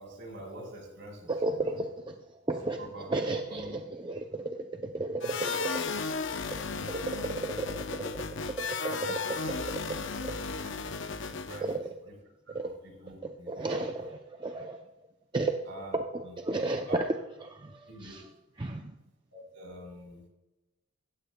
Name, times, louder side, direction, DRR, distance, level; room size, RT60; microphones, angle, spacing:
voice 1, 0.0-1.8 2.8-3.1 3.5-3.7 5.2-5.8 6.5-6.9 8.8-9.5 10.6-10.8 11.0-11.7 12.1-12.2 12.6-13.7 15.6-16.0 16.2-16.4 16.9-17.0 17.9-18.2 19.3-20.2, right 1 dB, 60° right, 4.3 m, -46 dB
voice 2, 1.3-1.9 2.5-4.4 4.8-5.2 5.6-5.7 6.9-7.7 7.9-8.0 8.6-8.7 9.1-9.2 10.2-10.3 11.6-11.8 12.5-12.7 13.5-14.1 14.4-14.8 15.3-15.6 15.9-17.2 17.6-17.7 18.0-18.2 18.6-18.9, right 2 dB, 20° right, 0.5 m, -32 dB
sound 1, 5.2-11.8, left 4 dB, 60° left, 0.7 m, -35 dB
15.5 x 15.0 x 2.2 m
head